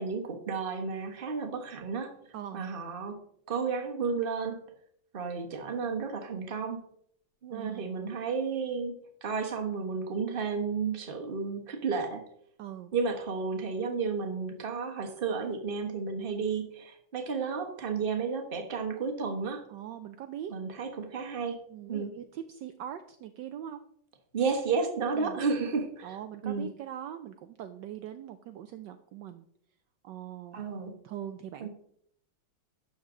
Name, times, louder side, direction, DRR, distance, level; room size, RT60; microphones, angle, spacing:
voice 1, 0.0-3.2 3.5-4.6 5.1-6.8 7.4-12.2 12.9-19.6 20.5-21.6 21.9-22.1 24.3-26.2 26.4-26.7 30.5-30.9 31.6-31.7, right 5 dB, 30° right, 4 dB, 1.2 m, -32 dB
voice 2, 2.3-2.6 7.5-7.9 12.6-12.9 19.7-20.6 21.7-23.8 25.1-25.4 26.0-29.5 30.0-30.6 31.0-31.7, right 10 dB, 70° right, 9 dB, 1.1 m, -41 dB
12.0 x 7.2 x 3.7 m, 0.68 s
omnidirectional pair, 2.1 m